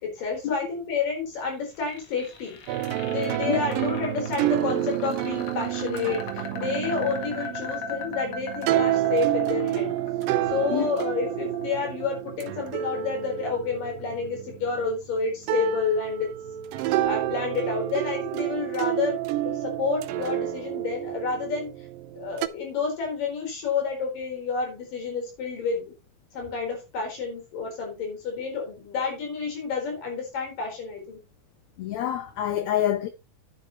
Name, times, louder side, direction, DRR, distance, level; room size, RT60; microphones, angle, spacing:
voice 1, 0.0-2.6 3.1-9.9 10.5-16.3 17.0-19.2 19.5-21.7 22.2-25.8 26.3-31.2, left 5 dB, 65° left, 5.8 m, -29 dB
sound 1, 1.6-13.6, left 4 dB, 50° left, 2.1 m, -39 dB
sound 2, 2.7-15.0 15.5-22.5, right 13 dB, 80° right, 2.2 m, -29 dB
voice 2, 31.8-33.1, left 11 dB, 80° left, 1.6 m, -26 dB
10.0 x 9.7 x 3.0 m
omnidirectional pair, 4.1 m